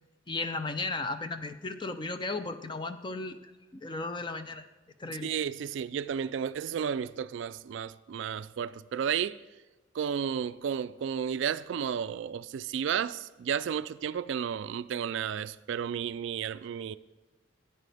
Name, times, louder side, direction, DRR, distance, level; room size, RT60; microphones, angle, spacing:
voice 1, 0.3-4.7 5.0-5.3, left 3 dB, 25° left, 0.5 m, -35 dB
voice 2, 5.2-9.4 9.9-17.0, right 8 dB, 65° right, 0.3 m, -32 dB
13.0 x 9.2 x 3.4 m
head